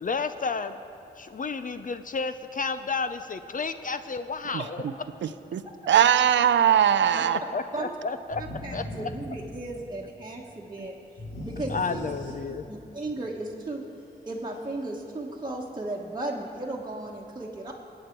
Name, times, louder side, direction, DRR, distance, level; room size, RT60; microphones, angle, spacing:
voice 1, 0.0-0.8 1.1-4.8 7.5-8.4 8.7-9.1 11.7-12.7, left 4 dB, 45° left, 11 dB, 0.6 m, -31 dB
voice 2, 5.2-7.4, right 9 dB, 70° right, 13 dB, 0.5 m, -21 dB
sound 1, 8.3-10.0 11.2-12.8, left 1 dB, 75° left, 2.5 m, -39 dB
voice 3, 8.6-10.9 11.4-12.0 12.7-13.8 14.3-17.7, right 2 dB, 20° right, -3 dB, 1.4 m, -35 dB
20.5 x 8.2 x 4.6 m, 2.7 s
supercardioid pair, 45°, 20 cm